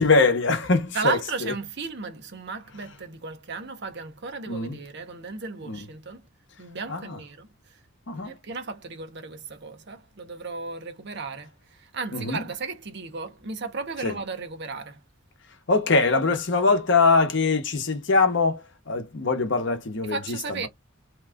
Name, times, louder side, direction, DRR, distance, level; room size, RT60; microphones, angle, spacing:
voice 1, 0.0-1.2 4.5-4.8 5.7-5.8 6.9-7.2 8.1-8.4 12.1-12.4 14.0-14.1 15.7-20.4, left 3 dB, 60° left, 0.8 m, -22 dB
voice 2, 0.9-6.3 6.6-7.8 8.1-15.0 20.0-20.7, right 4 dB, 55° right, 0.8 m, -35 dB
2.9 x 2.3 x 3.4 m
head